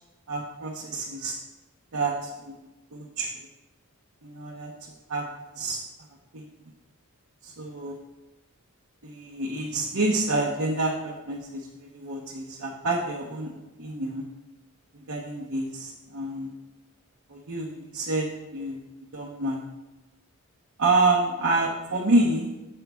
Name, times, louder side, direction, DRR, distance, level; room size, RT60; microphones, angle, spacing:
voice 1, 0.3-1.3 1.9-2.6 2.9-3.3 4.2-4.7 5.1-5.3 5.6-5.8 6.3-6.5 7.4-8.0 9.0-13.5 13.8-14.3 15.1-16.5 17.3-18.8 19.1-19.6 20.8-22.5, right 2 dB, 65° right, -3 dB, 0.9 m, -28 dB
14.0 x 5.5 x 2.3 m, 1.1 s
head